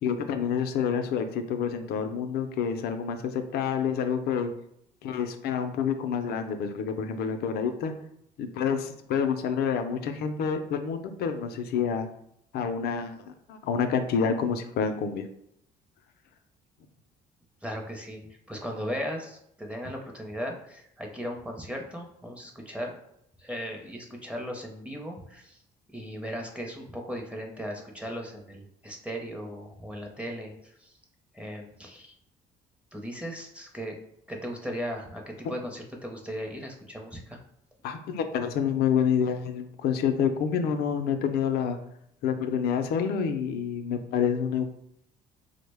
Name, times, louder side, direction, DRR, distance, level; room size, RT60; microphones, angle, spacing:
voice 1, 0.0-4.5 5.0-7.9 8.4-12.1 12.5-15.3 37.8-41.8 42.2-44.6, left 7 dB, 70° left, 8 dB, 0.4 m, -28 dB
voice 2, 17.6-18.2 18.5-22.9 23.4-25.6 25.9-31.0 31.3-32.2 32.9-34.0 34.3-37.4, equal, 5° right, 1 dB, 0.5 m, -37 dB
3.6 x 2.1 x 3.3 m, 0.73 s
cardioid pair, 110°, 17 cm